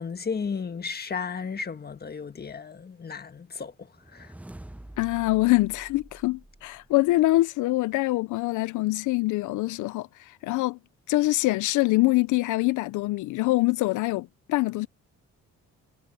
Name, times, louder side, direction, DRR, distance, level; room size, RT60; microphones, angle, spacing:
voice 1, 0.0-4.3, left 5 dB, 30° left, 1.6 m, -34 dB
sound 1, 3.9-7.1, right 1 dB, 5° right, 0.8 m, -47 dB
voice 2, 5.0-10.8 11.1-14.9, left 19 dB, 85° left, 0.5 m, -24 dB
cardioid pair, 90°, 30 cm